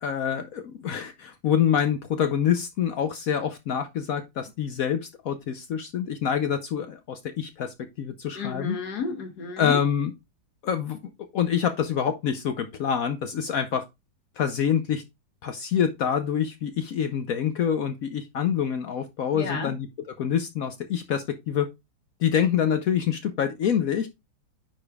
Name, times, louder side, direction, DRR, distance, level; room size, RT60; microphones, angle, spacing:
voice 1, 0.0-8.8 9.6-10.1 10.6-13.8 14.4-15.0 15.4-21.7 22.2-24.1, left 8 dB, 70° left, 0.8 m, -26 dB
voice 2, 8.3-9.8 19.3-19.7, left 4 dB, 55° left, 1.7 m, -32 dB
9.7 x 5.0 x 2.3 m
omnidirectional pair, 2.2 m